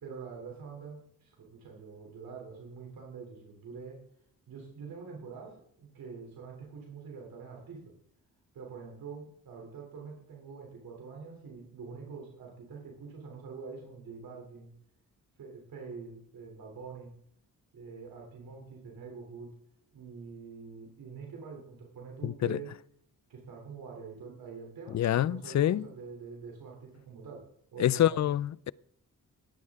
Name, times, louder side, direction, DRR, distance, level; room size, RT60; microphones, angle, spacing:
voice 1, 0.0-4.0 4.5-7.9 8.5-14.7 15.4-17.1 17.7-19.5 19.9-22.7 23.3-28.3, right 5 dB, 80° right, 3.2 m, -45 dB
voice 2, 22.2-22.6 24.9-25.9 27.8-28.7, left 11 dB, 55° left, 0.4 m, -26 dB
19.0 x 14.5 x 3.6 m
cardioid pair, 85°, 35 cm